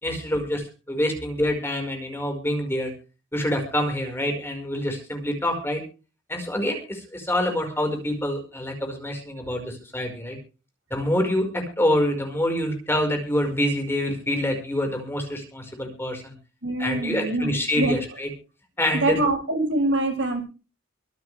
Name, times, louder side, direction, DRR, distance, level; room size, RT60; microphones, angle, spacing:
voice 1, 0.0-2.9 3.3-5.8 6.3-10.4 10.9-16.4 16.8-18.3 18.8-19.2, left 1 dB, 10° left, 3 dB, 5.2 m, -26 dB
voice 2, 16.6-18.0 18.9-20.4, right 2 dB, 70° right, 4 dB, 7.1 m, -24 dB
25.0 x 10.5 x 3.5 m, 0.34 s
head